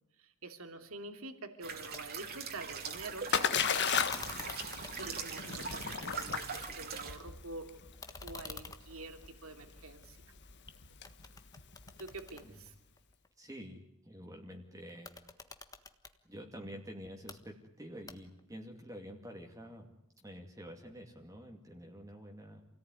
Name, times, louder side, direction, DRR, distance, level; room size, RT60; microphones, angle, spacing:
voice 1, 0.2-4.0 4.9-7.7 8.2-10.2 12.0-12.7, right 2 dB, 70° right, 6 dB, 2.9 m, -47 dB
sound 1, 1.6-7.2, right 6 dB, 45° right, 3.0 m, -42 dB
sound 2, 1.9-2.0 2.3-3.1 3.9-7.0 7.4-10.6 11.0-13.3 14.9-16.2 17.0-17.4 18.1-18.5, left 4 dB, 15° left, 1.4 m, -49 dB
Splash splatter, 2.6-12.5, left 7 dB, 50° left, 1.6 m, -37 dB
voice 2, 13.4-15.1 16.3-19.9 20.2-22.6, equal, 15° right, 1 dB, 2.4 m, -48 dB
28.5 x 18.0 x 9.8 m, 0.87 s
head